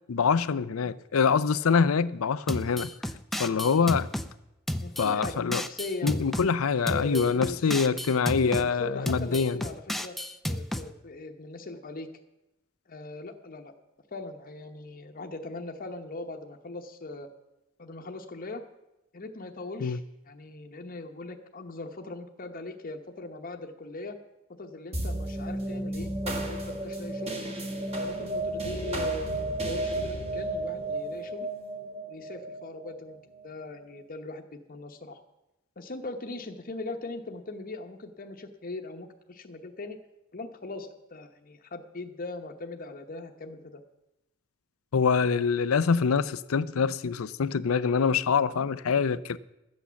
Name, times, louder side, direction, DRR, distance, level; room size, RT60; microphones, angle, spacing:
voice 1, 0.1-2.9 3.3-4.1 5.0-5.6 6.0-9.6 19.8-20.0 44.9-49.4, left 5 dB, 90° left, 0.5 m, -25 dB
sound 1, 2.5-4.3 4.7-6.5 6.9-8.7 9.1-10.9, left 1 dB, ahead, 0.5 m, -33 dB
voice 2, 4.8-6.3 6.8-7.7 8.3-10.2 10.5-12.1 12.9-13.7 14.1-17.3 17.8-18.6 19.1-24.2 24.6-27.4 27.9-31.5 32.1-33.2 33.4-35.2 35.8-40.0 40.3-43.8, left 2 dB, 45° left, 1.0 m, -40 dB
sound 2, 24.9-33.6, right 1 dB, 30° right, 1.7 m, -33 dB
13.0 x 8.5 x 7.0 m
head